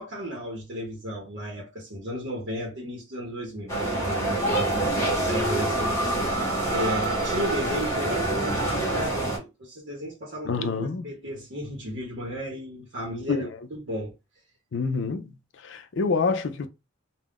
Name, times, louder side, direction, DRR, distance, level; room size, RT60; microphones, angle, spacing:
voice 1, 0.0-5.0 5.3-14.1, equal, 60° right, 0.8 m, -34 dB
sound 1, 3.7-9.4, right 1 dB, 15° left, 0.9 m, -26 dB
voice 2, 10.4-11.0 13.3-13.5 14.7-15.4 15.6-16.7, left 4 dB, 60° left, 0.4 m, -27 dB
2.4 x 2.1 x 3.5 m
head